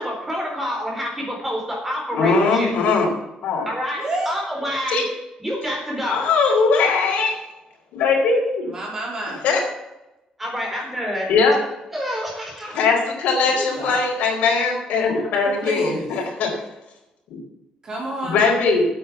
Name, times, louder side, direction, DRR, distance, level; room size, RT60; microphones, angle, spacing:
voice 1, 0.0-2.8 3.7-5.0 5.4-6.3 10.4-11.3 11.9-12.9, equal, 10° right, -1 dB, 3.9 m, -27 dB
voice 2, 2.1-3.1 3.4-3.7 4.9-5.0 6.0-7.3 7.9-8.7 9.4-9.6 11.3-11.6 12.7-16.5 17.3-17.4 18.2-18.9, left 4 dB, 85° left, 1 dB, 4.1 m, -20 dB
voice 3, 3.9-4.4 8.7-9.4 13.5-14.0 15.5-16.1 17.8-18.4, right 1 dB, 30° right, -1 dB, 3.6 m, -29 dB
9.3 x 8.1 x 7.2 m, 0.95 s
cardioid pair, 170°, 2 cm